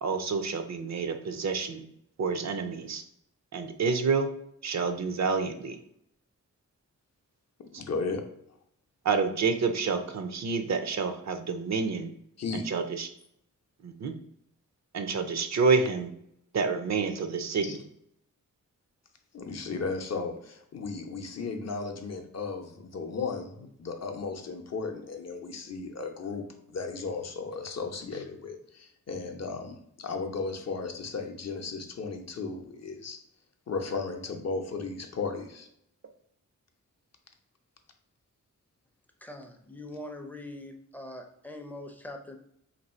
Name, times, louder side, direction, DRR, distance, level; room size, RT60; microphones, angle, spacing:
voice 1, 0.0-1.8 2.2-3.0 3.5-4.3 4.6-5.8 7.7-7.8 9.0-12.1 12.7-13.1 13.8-14.1 14.9-16.1 16.5-17.8, right 4 dB, 60° right, 8 dB, 0.5 m, -28 dB
voice 2, 7.6-8.2 12.4-12.7 17.6-17.8 19.3-33.2 33.7-35.7, left 4 dB, 55° left, 4 dB, 0.6 m, -35 dB
voice 3, 39.2-42.4, left 1 dB, 5° left, 4 dB, 0.4 m, -42 dB
3.1 x 2.6 x 4.1 m, 0.72 s
wide cardioid pair, 130°, 32 cm